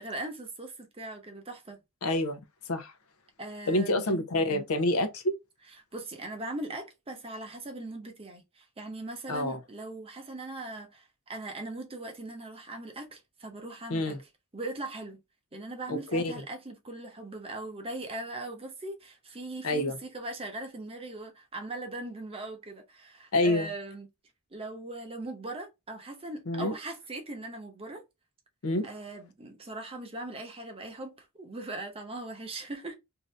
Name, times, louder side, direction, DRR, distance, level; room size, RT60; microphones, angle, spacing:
voice 1, 0.0-1.8 3.4-4.0 5.9-14.2 14.5-15.2 15.5-24.1 24.5-28.0 28.8-32.9, right 2 dB, 25° right, 0.8 m, -40 dB
voice 2, 2.0-2.4 2.7-2.9 3.7-5.3 9.3-9.6 13.9-14.2 15.9-16.3 19.6-20.0 23.3-23.7 26.5-26.7 28.6-28.8, left 1 dB, 80° left, 0.7 m, -27 dB
2.7 x 2.6 x 3.2 m
head